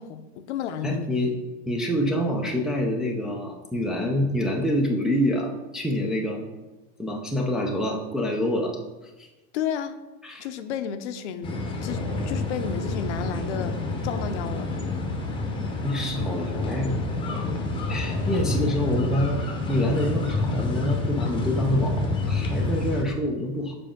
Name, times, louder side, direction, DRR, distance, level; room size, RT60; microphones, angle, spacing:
voice 1, 0.0-1.1 9.5-10.0 10.4-13.8 14.0-14.7 18.5-18.6, left 8 dB, 85° left, 9 dB, 0.7 m, -32 dB
voice 2, 0.8-1.3 1.7-6.4 7.0-8.8 9.2-9.3 10.2-10.4 15.8-16.9 17.9-19.4 19.7-23.7, equal, ahead, -1 dB, 0.3 m, -26 dB
sound 1, 11.4-23.0, left 2 dB, 15° left, 0.8 m, -28 dB
7.0 x 5.0 x 3.6 m, 1.1 s
supercardioid pair, 150°, 34 cm